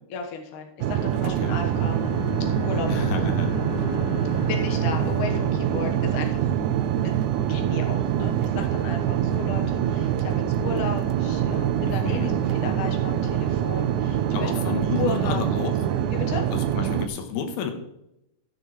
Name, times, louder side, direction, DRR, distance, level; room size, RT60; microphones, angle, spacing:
voice 1, 0.1-2.1 2.6-3.3 4.4-6.5 7.5-10.1 10.6-15.4 16.1-16.4, left 5 dB, 65° left, 3 dB, 2.6 m, -34 dB
sound 1, 0.8-17.1, right 10 dB, 85° right, 1.7 m, -25 dB
voice 2, 1.2-1.6 2.8-3.5 11.9-12.4 14.3-15.8 16.5-17.7, left 6 dB, 90° left, 6 dB, 3.0 m, -31 dB
Bowed string instrument, 1.2-7.2, left 5 dB, 35° left, 3.9 m, -35 dB
16.5 x 6.7 x 3.1 m, 0.82 s
omnidirectional pair, 4.2 m